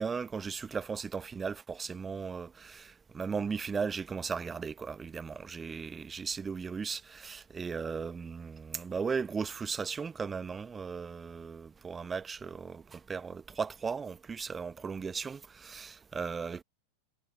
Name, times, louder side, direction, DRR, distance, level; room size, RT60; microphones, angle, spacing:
voice 1, 0.0-16.6, right 5 dB, 15° right, 1.1 m, -36 dB
figure-of-eight pair, 90°, 0 cm